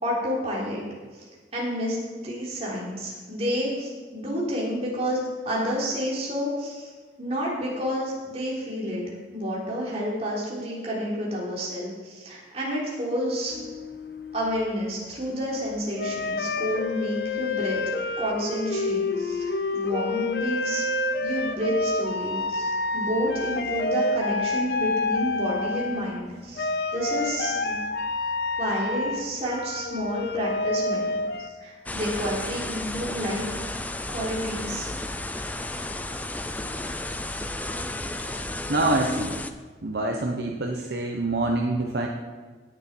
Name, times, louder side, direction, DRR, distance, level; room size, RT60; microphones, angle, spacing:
voice 1, 0.0-0.8 1.1-1.3 1.5-6.9 7.2-13.5 14.3-17.8 18.2-20.8 21.2-27.8 28.6-31.2 31.6-33.5 34.1-34.9, equal, 35° right, -5 dB, 3.6 m, -30 dB
sound 1, 13.5-14.7 16.0-26.2 26.5-31.5, left 2 dB, 60° left, 0.7 m, -28 dB
Rain Loop, 31.9-39.5, left 2 dB, 10° left, 0.5 m, -33 dB
voice 2, 38.7-39.4 39.8-42.1, right 2 dB, 65° right, 1 dB, 1.0 m, -25 dB
18.0 x 7.1 x 4.5 m, 1.4 s
head